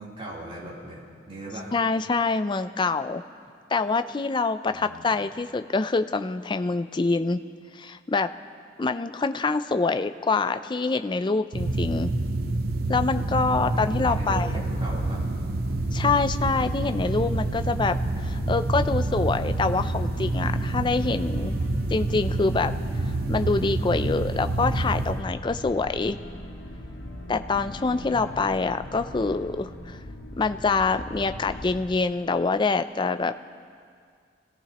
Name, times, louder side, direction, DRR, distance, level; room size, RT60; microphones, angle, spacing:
voice 1, 0.0-1.7 4.7-5.1 13.5-15.2 27.6-28.3, right 1 dB, 30° right, -7 dB, 3.5 m, -39 dB
voice 2, 1.7-3.2 3.7-7.4 7.7-8.3 8.8-12.1 12.9-14.5 15.9-21.5 21.9-22.7 23.3-26.2 27.3-30.0 30.4-33.3, left 4 dB, 25° left, 10 dB, 0.4 m, -25 dB
sound 1, 11.5-25.2, right 2 dB, 55° right, 0.7 m, -27 dB
sound 2, 14.1-31.7, left 1 dB, 75° left, 1.8 m, -40 dB
26.0 x 17.0 x 3.0 m, 2.2 s
head